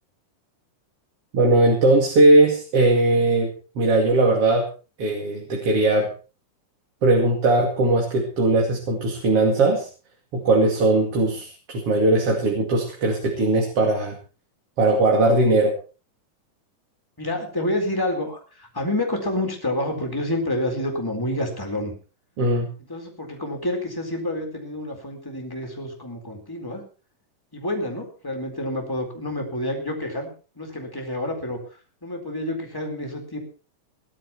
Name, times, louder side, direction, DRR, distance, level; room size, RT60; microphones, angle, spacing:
voice 1, 1.3-4.6 5.0-6.1 7.0-9.9 10.3-14.2 14.8-15.8 22.4-22.7, right 2 dB, 50° right, 0 dB, 3.2 m, -19 dB
voice 2, 17.2-21.9 22.9-26.8 27.5-33.4, left 1 dB, 5° left, 2 dB, 3.9 m, -28 dB
19.5 x 12.0 x 4.4 m, 0.36 s
omnidirectional pair, 3.7 m